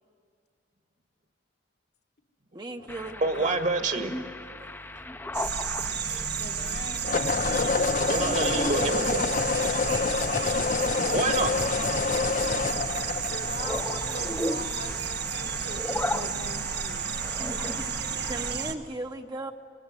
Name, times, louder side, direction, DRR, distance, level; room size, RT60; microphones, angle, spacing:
voice 1, 2.5-3.6 18.1-19.5, right 2 dB, 25° right, 5 dB, 0.9 m, -37 dB
sound 1, 2.8-3.1 7.0-14.1, left 4 dB, 45° left, 0.6 m, -27 dB
sound 2, 2.9-18.5, left 1 dB, 10° left, 0.7 m, -37 dB
voice 2, 3.2-4.1 6.1-6.3 8.1-9.2 11.1-11.5, right 3 dB, 45° right, 6 dB, 1.6 m, -27 dB
sound 3, 5.3-18.7, right 7 dB, 65° right, 1.4 m, -32 dB
voice 3, 6.4-7.9 9.7-9.9 13.3-17.1, left 3 dB, 60° left, 3 dB, 1.6 m, -41 dB
25.5 x 19.0 x 9.7 m, 2.2 s
head